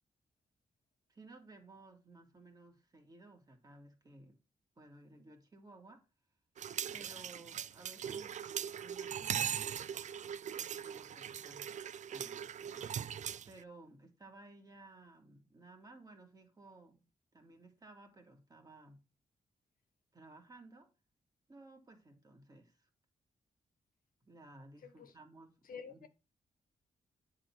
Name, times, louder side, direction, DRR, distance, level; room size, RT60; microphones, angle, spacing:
voice 1, 1.1-4.4 4.8-6.0 6.9-8.4 8.7-9.7 10.5-11.7 12.1-13.0 13.5-17.1 17.3-19.0 20.1-20.9 21.5-22.9 24.2-26.1, right 2 dB, 25° right, 2.2 m, -57 dB
sound 1, 6.6-13.6, right 9 dB, 55° right, 0.4 m, -40 dB
voice 2, 24.8-25.1 25.6-26.1, left 6 dB, 75° left, 1.3 m, -50 dB
9.8 x 4.0 x 6.0 m
wide cardioid pair, 135°, 15 cm